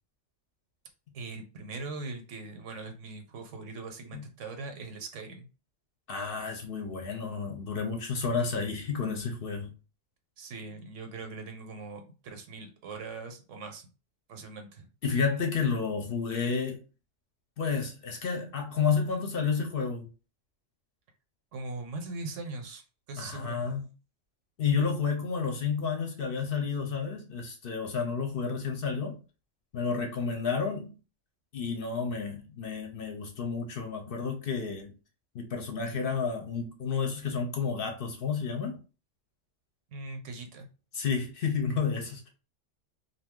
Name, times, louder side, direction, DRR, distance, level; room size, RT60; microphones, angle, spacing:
voice 1, 1.1-5.5 10.4-13.9 14.3-14.9 21.5-22.8 23.1-23.7 39.9-40.7, right 3 dB, 80° right, 1.0 m, -41 dB
voice 2, 6.1-9.7 15.0-16.8 17.6-20.1 23.2-23.8 24.6-29.2 29.7-30.9 31.5-34.9 35.3-38.8 40.9-42.3, left 5 dB, 55° left, 0.7 m, -31 dB
2.6 x 2.3 x 3.6 m
omnidirectional pair, 1.2 m